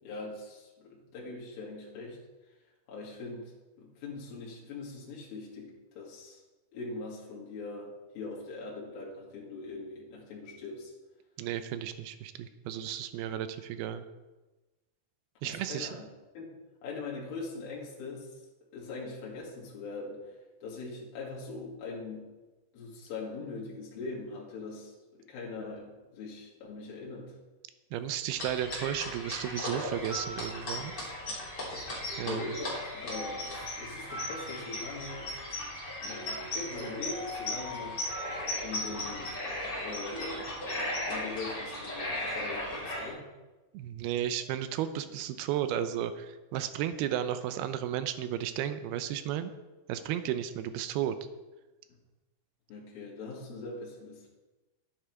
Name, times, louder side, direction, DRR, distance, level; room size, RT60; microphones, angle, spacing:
voice 1, 0.0-2.2 2.9-3.5 3.8-6.4 6.7-10.9 15.4-16.1 16.4-16.5 16.8-18.4 18.7-20.3 20.6-22.3 22.7-25.9 26.1-27.3 32.2-35.4 36.0-38.0 38.6-39.4 39.8-40.5 41.0-43.2 52.7-54.3, left 3 dB, 70° left, -4 dB, 3.9 m, -41 dB
voice 2, 11.4-14.0 15.4-15.9 27.9-30.9 32.2-32.5 43.7-49.5 49.9-51.2, right 10 dB, 85° right, 11 dB, 2.6 m, -33 dB
sound 1, 28.4-43.1, left 1 dB, 30° left, 3.5 m, -37 dB
sound 2, 30.0-41.0, equal, 10° right, 4.2 m, -45 dB
11.5 x 10.0 x 4.6 m, 1.1 s
omnidirectional pair, 4.4 m